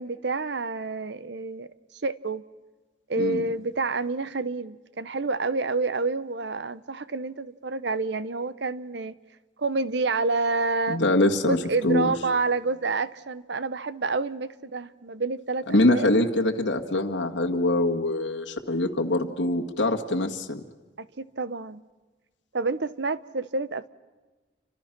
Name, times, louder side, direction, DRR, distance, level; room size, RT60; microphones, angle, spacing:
voice 1, 0.0-1.7 2.0-2.4 3.1-9.1 9.6-11.0 11.4-16.1 21.0-21.8 22.5-23.9, right 3 dB, 70° right, 0.9 m, -28 dB
voice 2, 10.9-11.6 11.8-12.1 15.7-20.6, left 1 dB, 85° left, 1.9 m, -24 dB
29.5 x 26.0 x 6.1 m
head